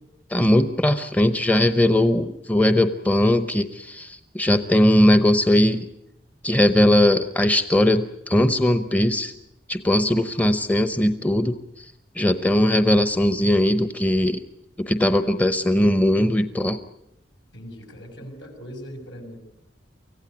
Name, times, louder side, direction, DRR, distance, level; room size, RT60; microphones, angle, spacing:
voice 1, 0.3-5.9 6.4-9.3 9.7-11.6 12.2-14.4 14.8-16.8, left 1 dB, 10° left, 10 dB, 0.8 m, -19 dB
voice 2, 17.5-19.4, equal, 75° left, 3 dB, 6.4 m, -40 dB
24.5 x 16.0 x 9.5 m, 0.81 s
head